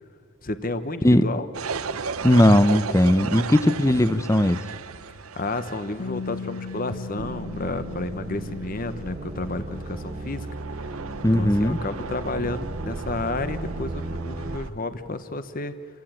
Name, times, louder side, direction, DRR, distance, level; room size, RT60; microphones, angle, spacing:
voice 1, 0.4-1.5 5.4-10.5 11.3-15.7, left 2 dB, 40° left, 11 dB, 0.9 m, -31 dB
sound 1, 1.5-14.7, right 4 dB, 85° right, 0.8 m, -36 dB
voice 2, 2.2-4.6 11.2-11.8, left 1 dB, 15° left, 13 dB, 0.7 m, -18 dB
Bass guitar, 6.0-12.2, left 4 dB, 75° left, 0.6 m, -40 dB
sound 2, 7.2-14.6, right 2 dB, 30° right, 0.7 m, -36 dB
29.0 x 15.5 x 8.8 m, 2.1 s
head